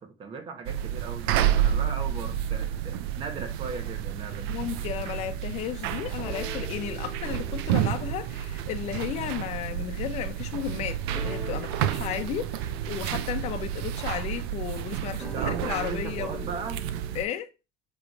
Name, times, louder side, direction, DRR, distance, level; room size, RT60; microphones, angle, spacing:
voice 1, 0.0-4.6 11.8-12.0 15.0-16.8, right 4 dB, 45° right, 1.8 m, -38 dB
sound 1, 0.6-17.2, right 11 dB, 90° right, 0.6 m, -30 dB
sound 2, 3.5-4.4 4.7-5.1 5.5-5.9 6.2-17.2, equal, 5° right, 2.1 m, -45 dB
voice 2, 4.3-16.5 17.1-17.5, left 11 dB, 60° left, 1.0 m, -34 dB
7.7 x 3.4 x 4.7 m
supercardioid pair, 105°, 13 cm